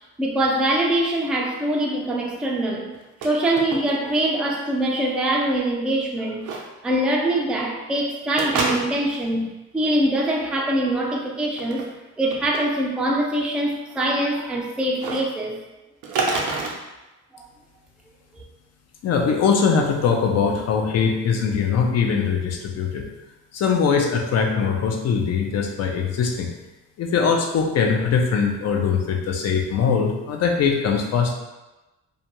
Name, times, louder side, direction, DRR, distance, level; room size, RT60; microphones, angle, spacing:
voice 1, 0.2-2.9 3.2-6.5 6.8-9.5 9.7-11.8 12.2-15.6, right 1 dB, 5° right, -1 dB, 0.3 m, -23 dB
sound 1, 2.9-3.3 3.6-4.2 4.5-4.6 6.4-6.6 8.4-9.2 11.5-11.8 12.3-12.6 15.0-15.2 16.0-16.7, right 3 dB, 90° right, 0.5 m, -26 dB
voice 2, 19.0-23.0 23.5-26.5 27.0-31.3, left 6 dB, 60° left, 2 dB, 0.5 m, -21 dB
2.4 x 2.2 x 2.9 m, 1.0 s
cardioid pair, 90°, 30 cm